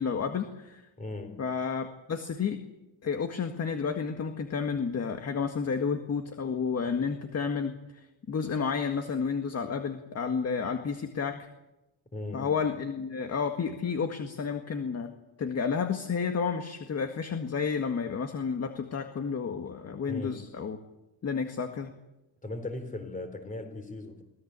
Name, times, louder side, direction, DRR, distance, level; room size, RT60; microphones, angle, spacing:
voice 1, 0.0-0.8 1.4-2.6 3.0-11.5 12.3-15.1 15.4-20.8 21.2-21.9, left 6 dB, 30° left, 6 dB, 1.8 m, -31 dB
voice 2, 1.0-1.4 12.1-12.6 20.1-20.5 22.4-24.2, left 2 dB, 15° left, 9 dB, 3.9 m, -38 dB
24.5 x 18.0 x 8.3 m, 0.94 s
cardioid pair, 145°, 47 cm